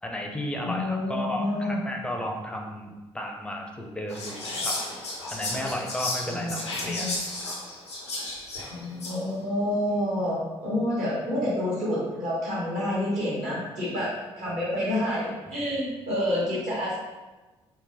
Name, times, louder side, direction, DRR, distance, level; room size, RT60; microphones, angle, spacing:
voice 1, 0.0-4.8 5.3-7.1, left 1 dB, 5° left, 1 dB, 0.5 m, -33 dB
voice 2, 0.6-1.8 6.3-7.1 8.7-17.0, left 1 dB, 55° right, -6 dB, 1.2 m, -28 dB
Whispering, 4.1-9.3, left 2 dB, 85° left, 0.5 m, -33 dB
3.7 x 2.0 x 2.6 m, 1.2 s
figure-of-eight pair, 40°, 14 cm